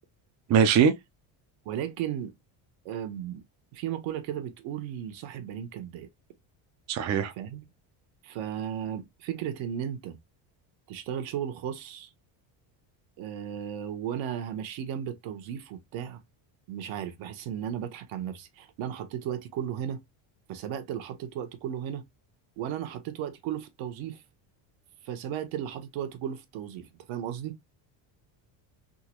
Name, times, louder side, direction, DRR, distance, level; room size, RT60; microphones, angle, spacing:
voice 1, 0.5-0.9 6.9-7.3, right 7 dB, 35° right, 0.5 m, -21 dB
voice 2, 1.6-2.3 2.8-3.4 3.7-6.1 7.4-7.6 8.2-10.1 10.9-12.1 13.2-16.2 16.7-20.0 20.5-22.0 22.6-24.2 25.0-27.6, right 9 dB, 65° right, 1.0 m, -35 dB
3.7 x 2.2 x 2.9 m
cardioid pair, 120°, 50 cm